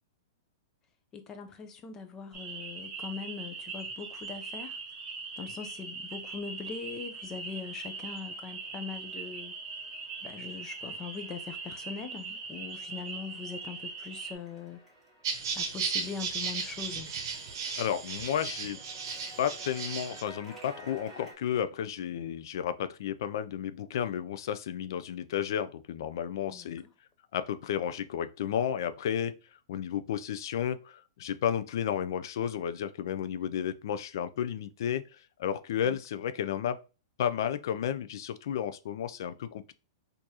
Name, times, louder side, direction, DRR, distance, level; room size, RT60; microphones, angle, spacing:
voice 1, 1.1-4.8 5.4-9.5 10.2-14.8 15.5-17.1 26.5-26.9 35.8-36.0, left 5 dB, 20° left, 0.6 m, -41 dB
sound 1, 2.3-14.3, right 4 dB, 20° right, 1.0 m, -41 dB
sound 2, 7.1-21.3, equal, 5° right, 1.5 m, -55 dB
sound 3, 15.2-20.2, right 5 dB, 55° right, 0.9 m, -35 dB
voice 2, 17.8-18.8 19.4-26.8 27.3-29.3 29.7-35.0 35.4-36.8 37.2-39.7, left 9 dB, 65° left, 0.4 m, -32 dB
4.5 x 2.6 x 2.9 m
hypercardioid pair, 150°, 2 cm